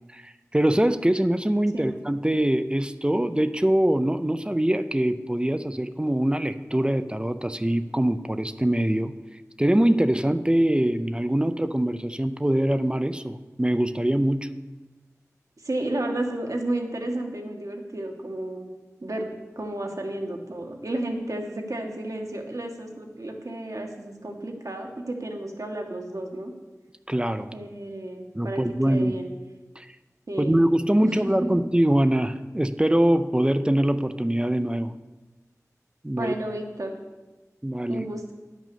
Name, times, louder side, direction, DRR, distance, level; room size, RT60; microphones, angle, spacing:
voice 1, 0.1-9.1 9.6-14.5 27.1-27.5 28.3-29.2 29.8-29.9 30.4-35.0 36.0-36.3 37.6-38.1, right 1 dB, 15° right, 11 dB, 0.5 m, -23 dB
voice 2, 15.6-18.7 19.0-19.3 19.5-26.5 27.5-29.3 30.3-30.7 31.0-31.5 36.1-36.9 37.9-38.3, right 1 dB, 70° right, 2 dB, 1.5 m, -32 dB
10.5 x 6.2 x 6.9 m, 1.2 s
wide cardioid pair, 55°, 6 cm